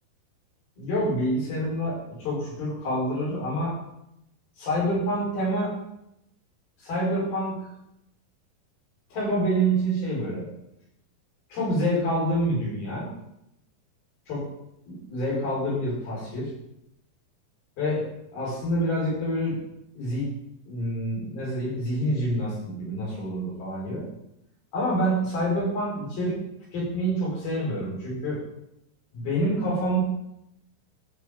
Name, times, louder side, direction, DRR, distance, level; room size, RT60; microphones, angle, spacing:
voice 1, 0.8-3.8 4.6-5.8 6.8-7.7 9.1-10.5 11.5-13.1 14.3-14.5 14.9-16.5 17.8-19.6 20.0-20.3 20.7-24.1 24.7-26.4 26.7-28.4 29.1-30.0, equal, 80° left, -6 dB, 6.9 m, -27 dB
14.0 x 6.3 x 5.1 m, 0.83 s
omnidirectional pair, 4.3 m